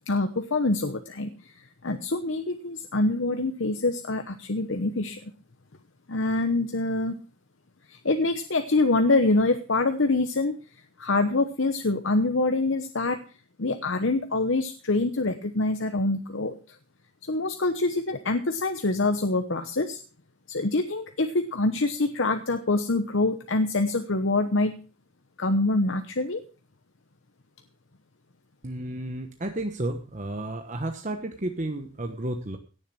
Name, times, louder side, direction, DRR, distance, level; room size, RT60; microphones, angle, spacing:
voice 1, 0.1-1.5 1.8-5.3 6.1-7.2 7.9-10.5 11.0-13.2 13.6-16.8 17.3-20.0 20.5-24.7 25.4-26.4, left 2 dB, 60° left, 8 dB, 1.0 m, -25 dB
voice 2, 28.6-32.6, right 1 dB, 35° right, 6 dB, 1.2 m, -32 dB
17.5 x 7.1 x 6.1 m, 0.37 s
head